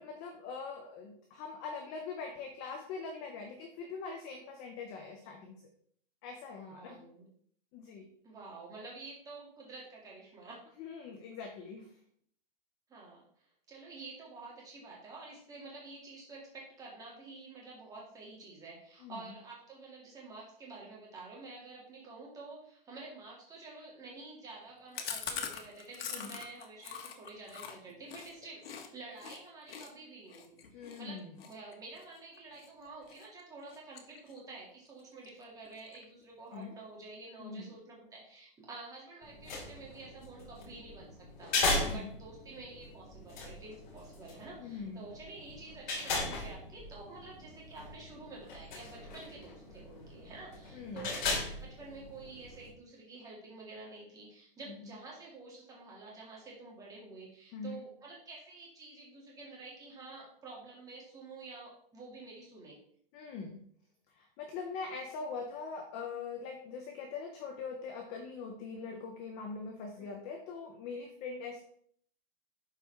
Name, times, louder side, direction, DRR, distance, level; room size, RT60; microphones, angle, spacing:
voice 1, 0.0-5.6 6.2-7.1 7.7-8.1 10.8-11.9 19.0-19.2 26.1-26.4 30.7-31.3 36.5-36.7 37.4-37.7 41.8-42.1 44.6-45.1 50.7-51.1 54.7-54.9 57.5-57.8 63.1-63.6 64.1-71.6, left 5 dB, 15° left, 3 dB, 0.3 m, -42 dB
voice 2, 6.5-7.3 8.2-10.6 12.9-41.1 41.4-51.2 51.6-62.8 70.0-70.2, right 3 dB, 10° right, -3 dB, 2.2 m, -49 dB
Chewing mastication, 24.9-28.9 29.2-29.4 29.7-32.7 33.1-33.4 33.7-34.6 34.9-35.0 35.2-35.3 35.6-36.2, left 7 dB, 80° left, 1.6 m, -43 dB
sound 1, 39.2-52.7, left 3 dB, 50° left, 3.0 m, -38 dB
11.5 x 4.6 x 3.4 m, 0.62 s
supercardioid pair, 165°, 29 cm